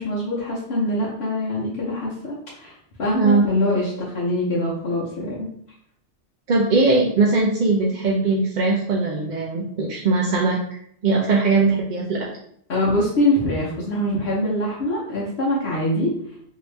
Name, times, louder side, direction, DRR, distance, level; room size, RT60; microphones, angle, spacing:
voice 1, 0.0-2.7 3.0-5.5 12.7-16.1, left 1 dB, 70° left, -5 dB, 1.1 m, -23 dB
voice 2, 6.5-10.6 11.0-12.3, right 3 dB, 55° right, -2 dB, 0.5 m, -20 dB
2.9 x 2.7 x 3.2 m, 0.66 s
omnidirectional pair, 1.2 m